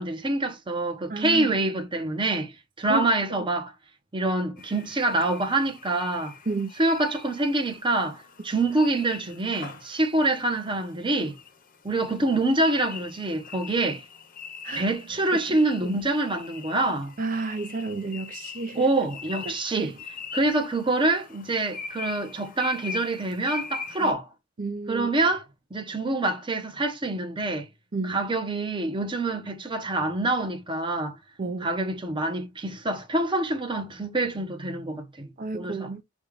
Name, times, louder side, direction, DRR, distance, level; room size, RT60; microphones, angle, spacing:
voice 1, 0.0-3.7 4.1-6.3 6.8-11.4 11.8-14.0 14.7-17.1 18.7-20.0 20.3-24.3 24.9-25.4 25.7-27.7 28.0-31.2 31.6-35.9, right 2 dB, 25° right, 0.9 m, -26 dB
voice 2, 1.1-1.5 2.9-3.1 6.5-6.7 14.6-14.9 17.2-18.9 19.4-19.6 19.8-19.9 24.0-24.1 24.6-25.1 27.9-28.2 31.4-31.7 35.4-36.0, right 3 dB, 40° right, 0.5 m, -31 dB
sound 1, 4.6-24.1, left 5 dB, 45° left, 0.8 m, -42 dB
5.3 x 2.4 x 3.2 m
head